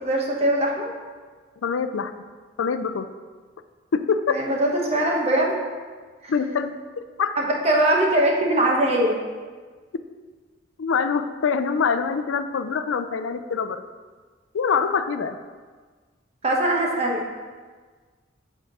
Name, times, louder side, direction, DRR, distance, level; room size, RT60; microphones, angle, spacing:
voice 1, 0.0-0.9 4.3-5.5 6.2-6.3 7.4-9.2 16.4-17.2, right 1 dB, 30° right, -1 dB, 1.1 m, -21 dB
voice 2, 1.6-2.1 2.6-3.1 3.9-4.4 6.3-7.3 10.8-13.8 14.5-15.4, left 5 dB, 80° left, 10 dB, 0.4 m, -24 dB
7.8 x 3.6 x 6.0 m, 1.5 s
head